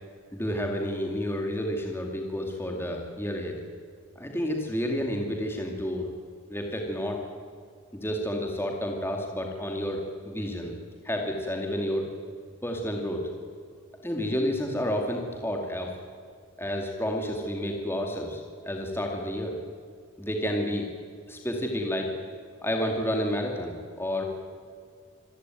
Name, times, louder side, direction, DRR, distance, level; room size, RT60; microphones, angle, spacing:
voice 1, 0.3-3.5 4.2-6.1 6.5-7.2 7.9-10.7 11.0-12.1 12.6-13.3 14.0-15.9 16.6-19.6 20.2-20.9 21.3-22.1 22.6-24.2, equal, 10° left, 2 dB, 2.3 m, -30 dB
26.5 x 15.5 x 9.3 m, 2.1 s
head